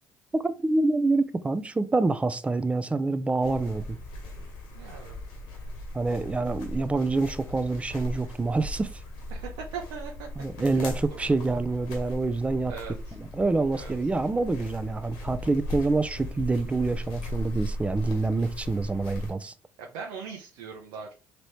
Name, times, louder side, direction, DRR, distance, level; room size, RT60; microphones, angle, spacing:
voice 1, 0.3-4.0 5.9-8.9 10.4-12.7 13.1-19.5, right 3 dB, 15° right, 0.5 m, -26 dB
sound 1, 3.4-19.3, left 1 dB, 85° left, 1.4 m, -38 dB
voice 2, 4.7-5.1 9.3-10.3 10.6-11.3 12.7-13.2 13.7-13.9 19.8-21.1, right 6 dB, 85° right, 0.8 m, -40 dB
4.0 x 3.0 x 3.3 m
supercardioid pair, 85°, 7 cm